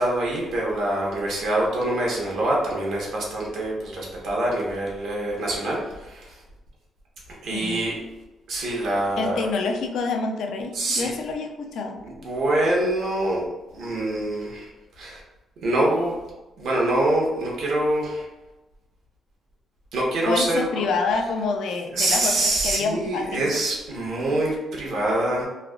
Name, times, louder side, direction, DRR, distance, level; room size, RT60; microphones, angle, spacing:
voice 1, 0.0-6.3 7.4-8.0 8.5-9.4 10.7-11.1 12.0-13.4 13.7-14.6 15.0-15.2 15.6-16.1 16.6-18.2 19.9-20.6 21.9-25.4, right 1 dB, 75° right, -3 dB, 1.0 m, -25 dB
voice 2, 7.5-7.8 9.2-12.0 20.2-23.5, left 4 dB, 80° left, 4 dB, 0.4 m, -27 dB
3.2 x 2.4 x 2.3 m, 1.0 s
cardioid pair, 110°, 0 cm